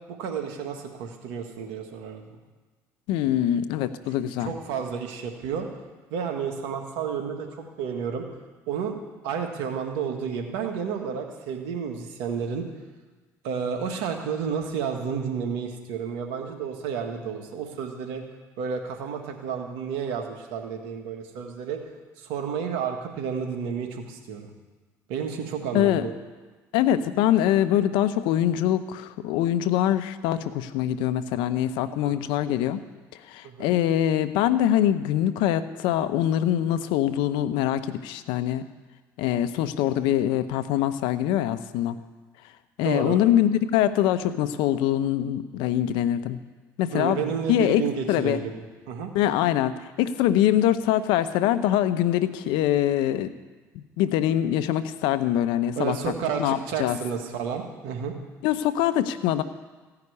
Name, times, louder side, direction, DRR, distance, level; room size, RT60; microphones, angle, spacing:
voice 1, 0.1-2.4 4.4-5.7 6.1-8.3 8.7-9.0 9.2-12.7 13.4-18.2 18.6-21.8 22.2-24.5 25.1-26.1 32.0-32.1 33.4-33.7 42.8-43.2 46.9-48.5 48.9-49.1 55.8-58.1, right 7 dB, 80° right, 4 dB, 1.7 m, -31 dB
voice 2, 3.1-4.5 25.7-26.1 26.7-32.8 33.3-38.7 39.2-42.0 42.8-46.4 46.8-47.2 47.5-47.8 48.1-48.4 49.1-53.3 54.0-56.0 56.4-57.0 58.4-59.4, left 11 dB, 75° left, 12 dB, 0.7 m, -23 dB
15.5 x 5.8 x 9.7 m, 1.3 s
supercardioid pair, 70°, 8 cm